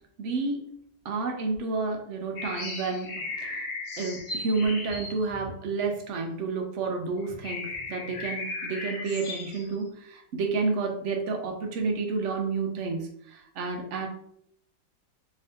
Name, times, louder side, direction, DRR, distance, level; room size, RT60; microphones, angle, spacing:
voice 1, 0.2-0.7 1.0-3.1 3.4-3.6 4.0-14.1, right 4 dB, 65° right, 2 dB, 0.7 m, -30 dB
sound 1, 2.4-6.3 6.8-6.9 7.2-9.7, left 3 dB, 80° left, 1.6 m, -36 dB
3.7 x 2.7 x 3.3 m, 0.71 s
omnidirectional pair, 2.0 m